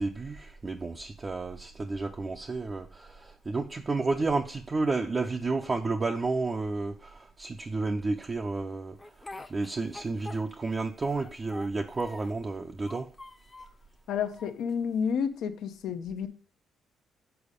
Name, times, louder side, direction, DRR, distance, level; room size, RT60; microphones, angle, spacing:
voice 1, 0.0-9.0 9.5-13.1, right 3 dB, 30° right, 0.6 m, -31 dB
Speech, 9.0-10.7 11.0-12.4 12.8-13.8 14.3-15.1, left 2 dB, 20° left, 0.7 m, -46 dB
voice 2, 14.1-16.3, left 7 dB, 80° left, 0.7 m, -30 dB
6.9 x 4.0 x 5.1 m
cardioid pair, 90°, 0 cm